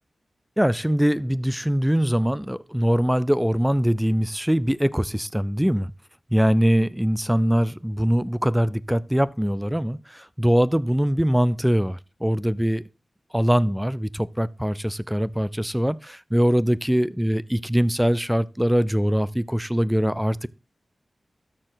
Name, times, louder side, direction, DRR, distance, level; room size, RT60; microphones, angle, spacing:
voice 1, 0.6-5.9 6.3-12.8 13.3-20.5, equal, 5° right, 0.4 m, -22 dB
13.0 x 4.5 x 3.9 m
wide cardioid pair, 60°, 0 cm